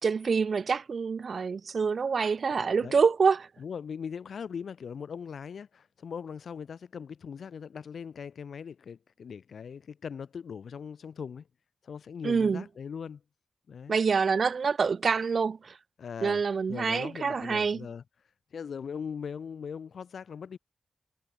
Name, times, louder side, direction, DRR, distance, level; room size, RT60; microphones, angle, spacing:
voice 1, 0.0-3.5 12.2-12.6 13.9-15.8 16.2-17.9, right 5 dB, 60° right, 0.4 m, -26 dB
voice 2, 2.5-3.0 3.6-11.5 11.8-13.2 13.7-14.0 16.0-16.4 16.7-18.0 18.5-20.6, left 6 dB, 80° left, 3.1 m, -40 dB
wide cardioid pair, 90°, 0 cm